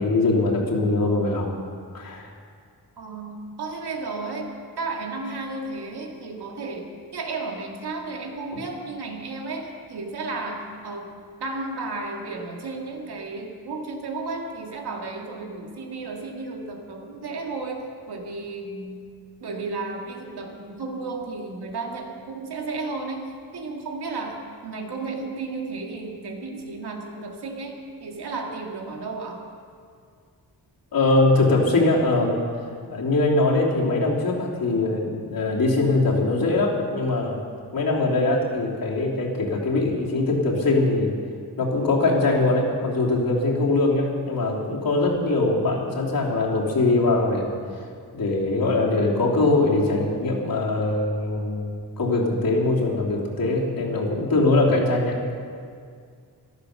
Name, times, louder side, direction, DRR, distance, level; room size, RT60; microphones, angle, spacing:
voice 1, 0.0-1.5 1.9-2.3 8.5-8.6 30.9-32.4 32.9-37.4 37.7-41.1 41.6-47.5 48.1-55.2, left 2 dB, 65° left, -3 dB, 3.2 m, -22 dB
voice 2, 3.0-11.1 11.4-19.0 19.4-29.4, right 3 dB, 85° right, 1 dB, 2.2 m, -33 dB
14.0 x 12.0 x 6.7 m, 2.2 s
wide cardioid pair, 105°, 38 cm